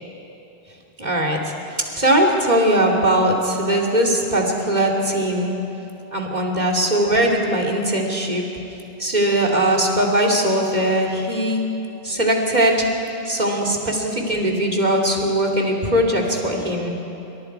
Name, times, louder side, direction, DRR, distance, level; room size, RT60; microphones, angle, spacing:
voice 1, 1.0-1.5 1.9-5.6 6.1-8.5 9.0-11.6 12.0-12.9 13.2-16.9, right 1 dB, 40° right, -1 dB, 2.9 m, -20 dB
28.5 x 25.5 x 4.7 m, 2.9 s
omnidirectional pair, 1.1 m